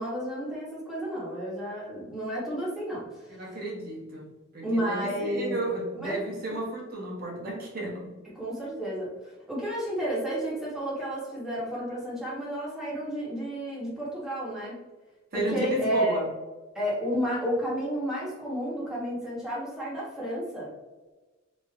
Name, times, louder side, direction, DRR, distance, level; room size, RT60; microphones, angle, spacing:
voice 1, 0.0-3.4 4.6-5.6 6.0-6.2 8.3-9.1 9.5-14.8 15.3-16.2 16.7-20.7, equal, ahead, -7 dB, 1.1 m, -31 dB
voice 2, 3.4-4.3 4.5-8.1 15.3-16.3, right 1 dB, 50° right, -3 dB, 1.0 m, -33 dB
3.1 x 2.6 x 2.3 m, 1.2 s
head